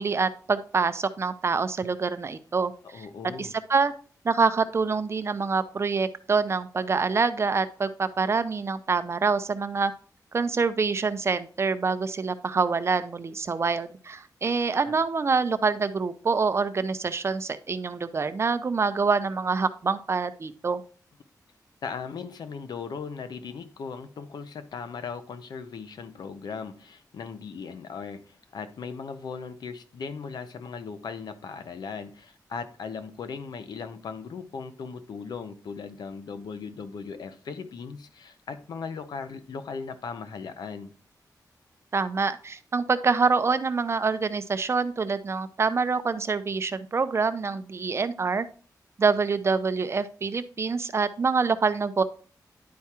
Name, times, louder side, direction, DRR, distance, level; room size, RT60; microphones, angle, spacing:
voice 1, 0.0-3.1 3.4-3.9 4.2-9.9 10.3-20.8 41.9-48.4 49.0-52.0, right 4 dB, 40° right, 0.6 m, -26 dB
voice 2, 2.9-3.5 14.8-15.0 21.8-40.9, left 5 dB, 80° left, 0.7 m, -38 dB
10.5 x 4.7 x 2.9 m
wide cardioid pair, 115°, 7 cm